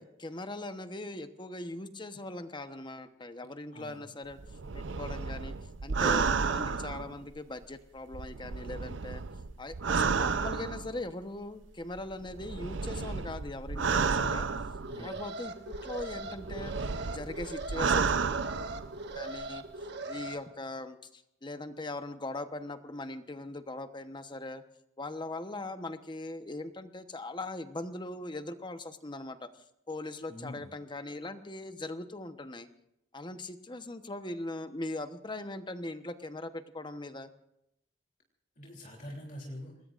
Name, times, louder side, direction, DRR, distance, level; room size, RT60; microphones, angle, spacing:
voice 1, 0.0-4.4 4.7-5.5 5.8-9.2 9.6-14.5 15.0-16.7 17.1-18.1 19.1-19.6 20.1-24.6 25.0-29.5 29.9-32.7 33.1-37.3, left 2 dB, 25° left, 9 dB, 1.1 m, -40 dB
voice 2, 3.7-4.1 14.1-14.6 14.9-15.3 30.3-30.7 38.6-39.7, left 1 dB, 45° left, -1 dB, 3.2 m, -45 dB
sound 1, 4.4-7.6 8.1-11.1 12.0-15.2 15.7-19.1 19.4-19.5, right 5 dB, 85° right, 0.7 m, -32 dB
Alarm, 14.7-20.3, right 2 dB, 65° right, 1.6 m, -41 dB
27.0 x 20.5 x 2.6 m, 0.80 s
head